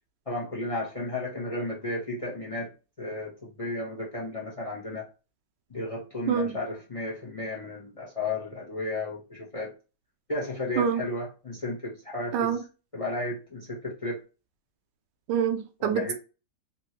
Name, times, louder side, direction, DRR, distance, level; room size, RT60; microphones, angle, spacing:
voice 1, 0.3-2.7 3.0-5.1 5.7-9.7 10.3-12.6 12.9-14.2 15.8-16.1, left 2 dB, 30° left, 0.6 m, -33 dB
voice 2, 6.3-6.6 10.8-11.0 12.3-12.6 15.3-16.1, right 7 dB, 85° right, 1.2 m, -26 dB
3.5 x 2.7 x 2.9 m
omnidirectional pair, 1.9 m